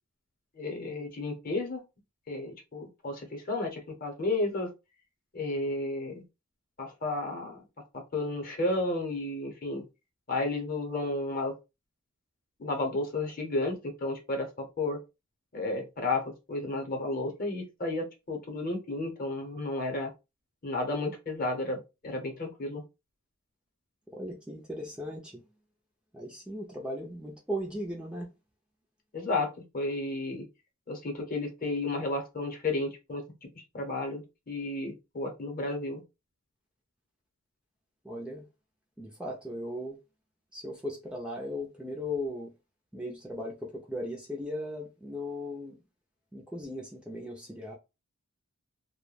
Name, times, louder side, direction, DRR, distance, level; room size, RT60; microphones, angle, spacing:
voice 1, 0.6-1.8 2.3-4.7 5.3-6.2 6.8-7.6 8.1-9.8 10.3-11.5 12.6-15.0 15.5-20.1 20.6-22.8 29.1-29.5 29.7-30.5 30.9-33.5 33.7-36.0, left 2 dB, 40° left, 0.7 m, -32 dB
voice 2, 24.1-25.3 26.1-28.3 38.0-38.4 39.0-40.0 40.5-42.5 42.9-45.8 46.3-47.8, left 1 dB, 5° right, 0.3 m, -37 dB
2.2 x 2.1 x 3.2 m
head